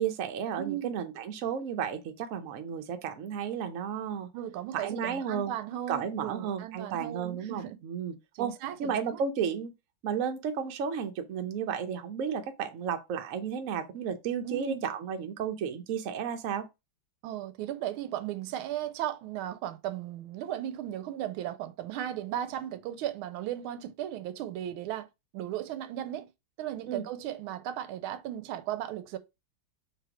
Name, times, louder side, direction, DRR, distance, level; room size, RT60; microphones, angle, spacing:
voice 1, 0.0-4.3 4.7-5.5 5.9-8.5 8.8-9.7 10.0-16.7 26.9-27.0, right 7 dB, 70° right, 0.7 m, -33 dB
voice 2, 0.6-1.0 4.3-7.8 8.3-9.2 14.4-14.8 17.2-25.1 25.3-26.3 26.6-29.2, right 12 dB, 90° right, 1.4 m, -36 dB
3.5 x 3.0 x 4.8 m
omnidirectional pair, 2.2 m